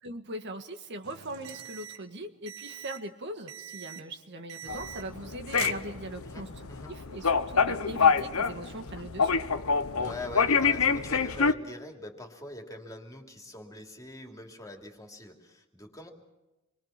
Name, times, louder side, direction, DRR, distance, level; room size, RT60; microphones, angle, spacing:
voice 1, 0.0-6.5 6.9-9.4, right 1 dB, 55° right, 6 dB, 1.6 m, -40 dB
sound 1, 1.0-2.1 2.5-3.1 3.5-4.1 4.5-5.3 5.5-6.4, right 9 dB, 80° right, 1.1 m, -43 dB
sound 2, 4.7-11.5, left 5 dB, 85° left, 1.0 m, -26 dB
voice 2, 6.2-6.9 10.0-16.1, left 2 dB, 15° left, 2 dB, 3.0 m, -44 dB
27.0 x 22.5 x 5.9 m, 1.0 s
head